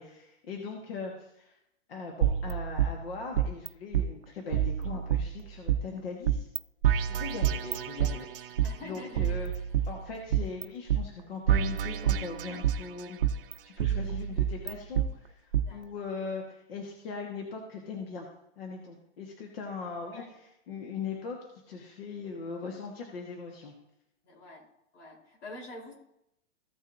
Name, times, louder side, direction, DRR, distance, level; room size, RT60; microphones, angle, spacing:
voice 1, 0.0-1.5 1.9-6.5 7.1-8.5 8.8-9.5 9.9-13.2 13.6-18.3 18.6-20.2 20.7-21.4 21.7-23.7, left 5 dB, 55° left, 0 dB, 1.6 m, -40 dB
sound 1, 2.2-3.7 3.9-4.1 4.5-5.8 6.3-6.6 6.8-8.7 9.2-10.6 10.9-11.0 11.5-12.8 13.2-15.1 15.5-15.6, right 10 dB, 50° right, 0.6 m, -28 dB
voice 2, 8.6-9.4 15.6-16.1 20.0-20.3 24.2-24.7 24.9-25.9, left 1 dB, 85° left, 0 dB, 3.9 m, -46 dB
15.5 x 6.2 x 2.7 m, 0.81 s
hypercardioid pair, 180°, 36 cm